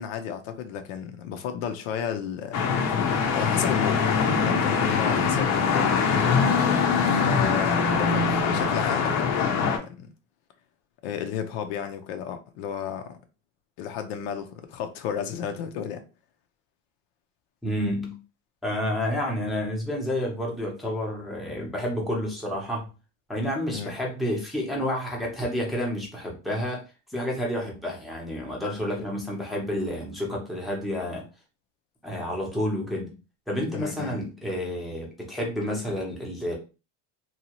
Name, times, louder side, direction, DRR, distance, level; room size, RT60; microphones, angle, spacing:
voice 1, 0.0-2.6 2.9-3.0 3.3-6.1 7.1-10.1 11.0-13.2 13.8-16.0 23.7-23.9 33.7-34.2, left 8 dB, 80° left, 0.7 m, -33 dB
sound 1, 2.5-9.8, left 5 dB, 50° left, 0.6 m, -23 dB
voice 2, 7.3-7.6 17.6-18.2 18.6-22.9 23.3-26.8 27.1-31.3 32.0-33.1 33.5-36.5, left 1 dB, ahead, 0.7 m, -30 dB
2.8 x 2.3 x 2.9 m
cardioid pair, 145°, 35 cm